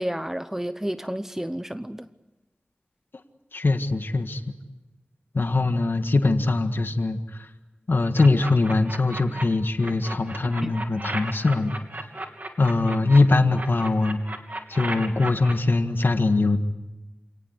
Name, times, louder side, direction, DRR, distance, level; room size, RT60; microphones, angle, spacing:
voice 1, 0.0-2.1 10.4-10.8, equal, 10° right, 0.9 m, -31 dB
voice 2, 3.5-4.4 5.3-7.5 7.9-11.8 12.6-14.2 14.7-16.6, left 3 dB, 85° left, 1.7 m, -22 dB
sound 1, 8.1-9.4 9.8-13.2 13.5-15.5, right 2 dB, 55° right, 3.1 m, -34 dB
28.5 x 18.5 x 9.8 m
wide cardioid pair, 65°, 4 cm